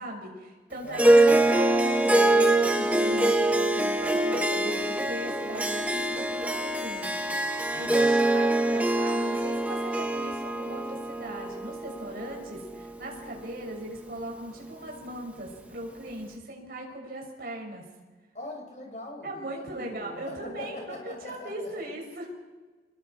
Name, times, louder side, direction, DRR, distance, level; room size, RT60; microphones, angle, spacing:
voice 1, 0.0-7.4 7.8-17.8 19.2-21.0 21.2-22.3, right 1 dB, 55° right, -1 dB, 6.4 m, -38 dB
voice 2, 0.8-1.6 7.7-8.3 18.3-21.9, left 1 dB, 40° left, 1 dB, 6.3 m, -41 dB
Harp, 0.9-13.5, right 1 dB, 10° right, 1.2 m, -24 dB
28.5 x 21.0 x 4.7 m, 1.3 s
head